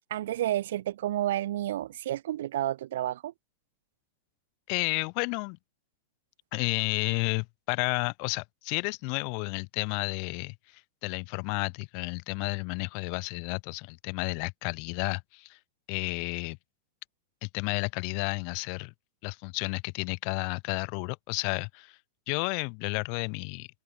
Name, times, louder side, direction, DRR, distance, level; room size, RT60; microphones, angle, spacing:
voice 1, 0.1-3.3, right 13 dB, 60° right, 0.5 m, -30 dB
voice 2, 4.7-5.6 6.5-15.6 15.9-16.6 17.4-18.9 19.2-22.0 22.3-23.7, left 40 dB or more, 45° left, 0.9 m, -32 dB
open air
figure-of-eight pair, 90°, 0 cm